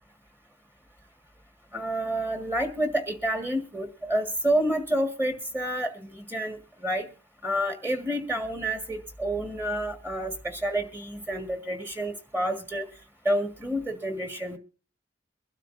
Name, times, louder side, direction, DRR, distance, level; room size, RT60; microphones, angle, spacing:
voice 1, 1.7-7.1 7.4-12.9 13.3-14.6, right 1 dB, 10° right, 6 dB, 1.8 m, -29 dB
23.5 x 12.5 x 2.6 m, 0.35 s
head